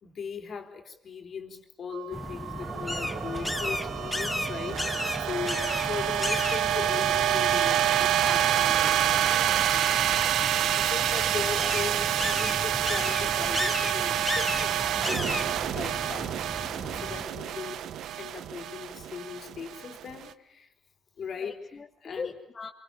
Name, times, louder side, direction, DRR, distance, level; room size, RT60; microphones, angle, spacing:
voice 1, 0.0-9.2 10.7-16.4 16.9-17.8 18.2-20.7 21.2-21.6 22.0-22.3, left 6 dB, 55° left, 5 dB, 3.9 m, -38 dB
sound 1, 1.9-20.2, right 11 dB, 75° right, 1.0 m, -28 dB
sound 2, 2.1-17.2, left 1 dB, 10° left, 1.1 m, -35 dB
sound 3, 2.6-15.6, right 5 dB, 50° right, 2.9 m, -42 dB
voice 2, 9.2-10.1 21.4-22.7, left 4 dB, 35° left, 0 dB, 2.3 m, -41 dB
26.5 x 25.0 x 8.9 m, 0.73 s
cardioid pair, 90°, 0 cm